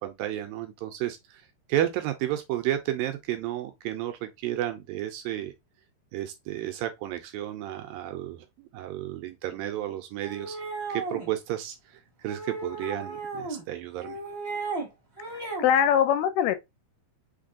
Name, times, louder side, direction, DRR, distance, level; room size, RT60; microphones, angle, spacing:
voice 1, 0.0-1.4 1.7-5.5 6.1-10.6 10.9-14.2, right 12 dB, 80° right, 2.2 m, -32 dB
sound 1, 10.2-11.3 12.3-13.6 14.0-14.9 15.2-15.7, right 3 dB, 30° right, 1.2 m, -35 dB
voice 2, 15.3-16.6, left 9 dB, 90° left, 2.7 m, -23 dB
5.9 x 3.5 x 2.5 m
omnidirectional pair, 4.5 m